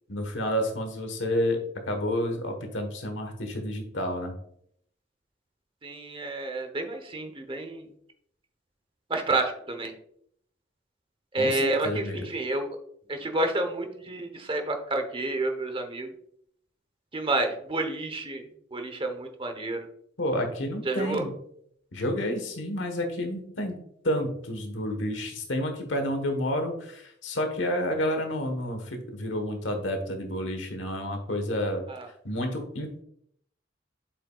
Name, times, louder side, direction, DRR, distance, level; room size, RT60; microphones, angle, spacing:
voice 1, 0.1-1.6 1.9-4.3 11.4-12.2 20.2-21.3 21.9-23.8 24.0-31.8 32.2-33.0, equal, 85° left, 5 dB, 1.2 m, -30 dB
voice 2, 5.8-7.9 9.1-9.9 11.3-12.7 13.1-16.1 17.1-18.5 18.7-19.9 20.8-21.3 31.9-32.1, right 2 dB, 30° right, 6 dB, 0.9 m, -29 dB
7.4 x 5.5 x 2.3 m, 0.68 s
head